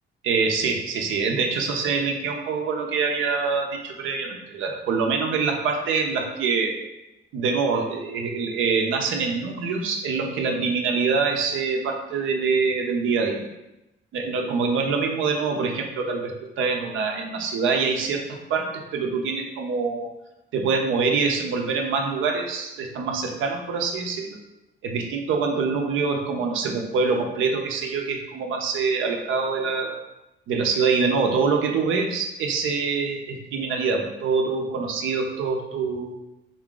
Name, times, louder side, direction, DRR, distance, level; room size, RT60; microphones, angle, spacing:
voice 1, 0.2-6.8 7.3-13.4 14.1-20.1 20.5-24.4 24.8-30.0 30.5-36.2, right 4 dB, 80° right, 2 dB, 0.6 m, -25 dB
3.8 x 2.4 x 3.8 m, 0.93 s
cardioid pair, 90°, 20 cm